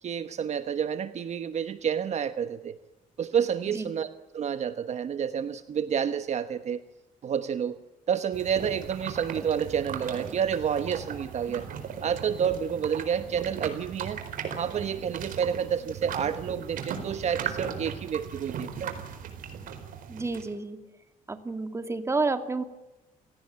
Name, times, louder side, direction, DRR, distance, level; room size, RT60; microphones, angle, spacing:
voice 1, 0.0-2.8 3.2-6.8 7.2-7.8 8.1-11.7 12.0-14.2 14.5-18.9, right 8 dB, 50° right, 11 dB, 1.1 m, -29 dB
sound 1, 8.3-20.5, right 7 dB, 75° right, 4.4 m, -37 dB
voice 2, 20.1-20.8 21.3-22.6, right 3 dB, 20° right, 8 dB, 2.3 m, -30 dB
28.5 x 17.5 x 8.8 m, 1.0 s
cardioid pair, 120°, 14 cm